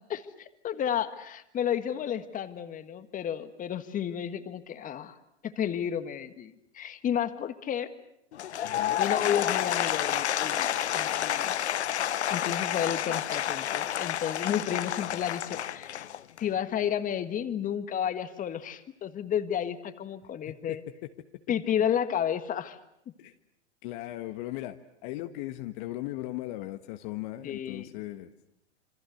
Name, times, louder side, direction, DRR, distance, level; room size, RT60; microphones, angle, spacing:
voice 1, 0.0-5.2 5.4-7.9 9.0-11.8 12.3-16.1 16.4-20.8 21.5-22.8 27.4-27.9, left 9 dB, 25° left, 11 dB, 1.6 m, -32 dB
Applause / Crowd, 8.3-16.5, left 10 dB, 70° left, 1.0 m, -30 dB
voice 2, 8.6-9.0 15.1-15.2 15.5-15.6 20.7-21.1 23.2-23.3 23.8-28.3, left 16 dB, 45° left, 8 dB, 1.4 m, -38 dB
27.0 x 25.5 x 8.0 m, 0.79 s
figure-of-eight pair, 105°, 34 cm